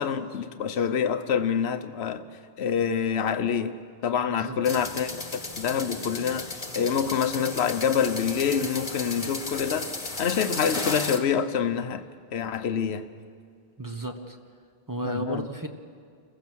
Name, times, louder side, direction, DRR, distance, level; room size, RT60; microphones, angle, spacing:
voice 1, 0.0-2.2 2.6-3.7 4.0-9.9 10.2-12.0 12.3-13.0 15.0-15.4, left 7 dB, 65° left, 9 dB, 1.1 m, -26 dB
sound 1, 4.6-11.2, left 2 dB, 30° left, 1.5 m, -35 dB
voice 2, 13.8-14.4 14.9-15.7, right 1 dB, 15° right, 4 dB, 1.1 m, -33 dB
28.5 x 15.5 x 6.3 m, 2.1 s
omnidirectional pair, 1.2 m